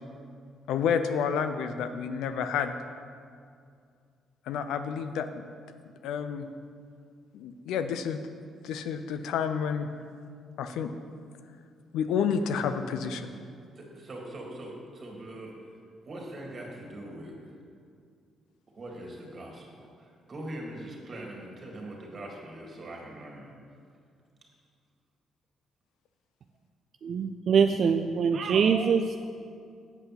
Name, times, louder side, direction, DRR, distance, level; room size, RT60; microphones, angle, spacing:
voice 1, 0.7-2.8 4.5-5.4 6.0-6.5 7.3-8.3 8.6-9.9 10.6-10.9 11.9-13.3, left 7 dB, 85° left, 9 dB, 0.5 m, -29 dB
voice 2, 13.8-15.7 16.0-17.5 18.8-23.5, right 1 dB, 40° right, -1 dB, 2.0 m, -42 dB
voice 3, 27.0-29.2, right 6 dB, 60° right, 6 dB, 0.3 m, -24 dB
8.3 x 5.6 x 5.8 m, 2.3 s
cardioid pair, 90°, 0 cm